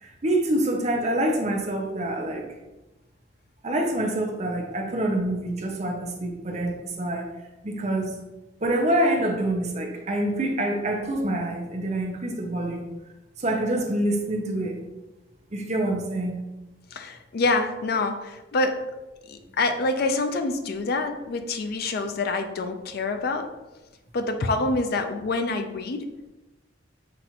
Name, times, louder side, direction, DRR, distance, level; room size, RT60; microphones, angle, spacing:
voice 1, 0.0-2.5 3.6-7.3 7.6-8.1 8.6-12.9 13.4-14.8 15.5-16.4, right 1 dB, 35° right, 1 dB, 0.7 m, -26 dB
voice 2, 16.9-18.8 19.3-23.5 24.1-26.1, left 3 dB, 55° left, 7 dB, 0.4 m, -26 dB
5.9 x 2.5 x 2.9 m, 1.0 s
head